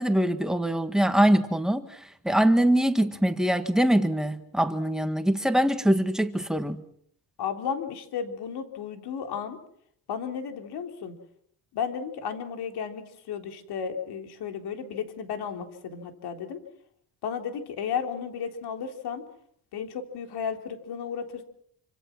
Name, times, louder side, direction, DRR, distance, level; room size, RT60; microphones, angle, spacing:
voice 1, 0.0-6.8, right 1 dB, ahead, 1.7 m, -23 dB
voice 2, 7.4-9.6 10.1-11.2 11.7-16.6 17.2-19.2 19.7-21.4, left 7 dB, 70° left, 3.8 m, -33 dB
27.5 x 26.0 x 6.1 m
cardioid pair, 155°, 40 cm